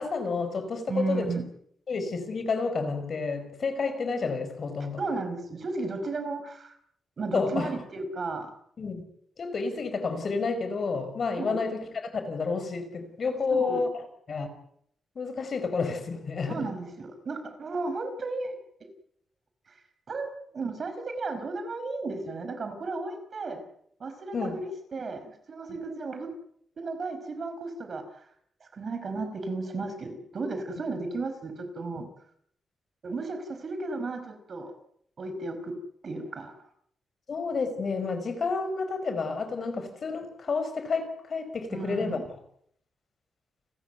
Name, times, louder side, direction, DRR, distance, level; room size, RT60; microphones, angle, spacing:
voice 1, 0.0-1.3 1.9-5.0 7.3-7.7 8.8-9.0 9.4-13.9 14.3-14.5 15.1-16.6 24.3-24.6 37.3-42.2, left 4 dB, 45° left, 9 dB, 5.0 m, -30 dB
voice 2, 0.9-1.4 5.0-6.8 7.2-8.5 11.4-11.6 13.5-13.8 16.5-18.6 19.7-23.7 24.0-26.3 26.8-28.2 28.6-32.1 33.0-34.7 35.2-35.7 36.0-36.7 41.7-42.2, right 3 dB, 45° right, 8 dB, 4.9 m, -34 dB
30.0 x 14.0 x 9.3 m, 0.68 s
wide cardioid pair, 130°, 0 cm